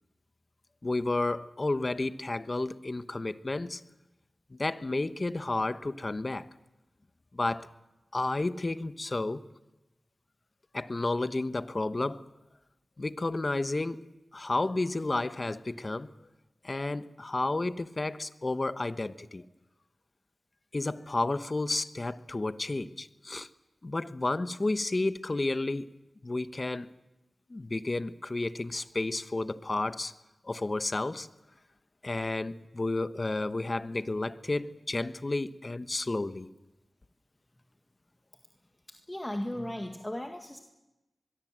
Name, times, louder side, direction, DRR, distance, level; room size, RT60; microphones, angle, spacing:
voice 1, 0.8-3.8 4.5-6.5 7.3-7.7 8.1-9.4 10.7-12.2 13.0-16.1 16.6-19.4 20.7-23.5 23.8-25.9 26.2-26.9 27.5-30.1 30.4-31.3 32.0-36.5, left 2 dB, 40° left, 1.0 m, -31 dB
voice 2, 38.9-40.6, left 1 dB, 15° left, 1.9 m, -36 dB
24.5 x 22.0 x 7.6 m
cardioid pair, 55°, 0 cm